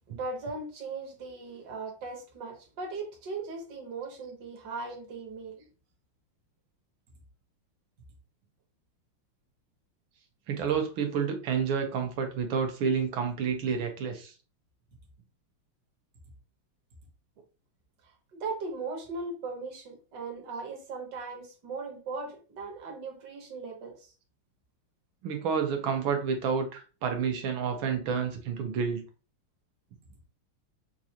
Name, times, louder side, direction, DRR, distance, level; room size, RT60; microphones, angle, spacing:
voice 1, 0.1-5.6 18.3-24.1, right 3 dB, 55° right, 1.7 m, -38 dB
voice 2, 10.5-14.3 25.2-29.0, right 6 dB, 70° right, 1.6 m, -29 dB
6.0 x 2.6 x 2.8 m
omnidirectional pair, 2.4 m